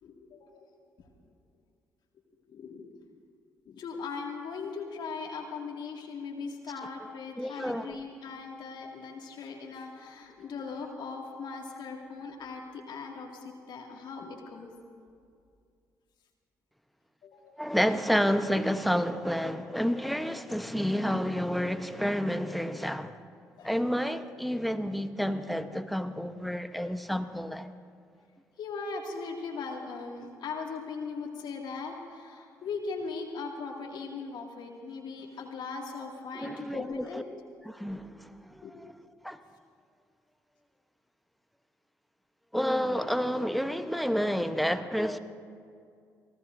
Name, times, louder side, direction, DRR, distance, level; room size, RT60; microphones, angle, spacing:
voice 1, 0.0-0.7 1.0-1.1 2.5-2.9 3.7-14.7 17.2-17.4 23.6-23.7 28.6-37.2 38.6-38.7, left 4 dB, 60° left, 2.2 m, -39 dB
voice 2, 7.4-8.0 17.6-23.2 23.6-27.7 36.3-37.2 37.6-39.0 39.2-39.4 42.5-45.2, equal, ahead, 1.0 m, -30 dB
26.0 x 18.5 x 2.7 m
hypercardioid pair, 45°, 9 cm